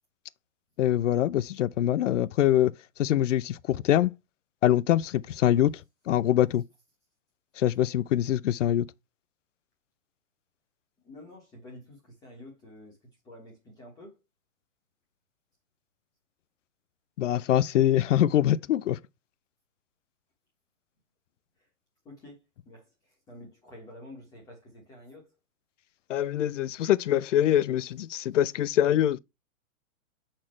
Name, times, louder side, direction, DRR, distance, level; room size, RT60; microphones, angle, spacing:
voice 1, 0.8-2.7 3.0-4.1 4.6-5.8 6.1-6.6 7.6-8.8 17.2-19.0 26.1-29.2, left 12 dB, 60° left, 0.5 m, -24 dB
voice 2, 11.0-14.2 21.6-21.7 22.0-25.3, left 1 dB, 10° left, 1.1 m, -49 dB
7.3 x 4.4 x 3.1 m
hypercardioid pair, 175°, 41 cm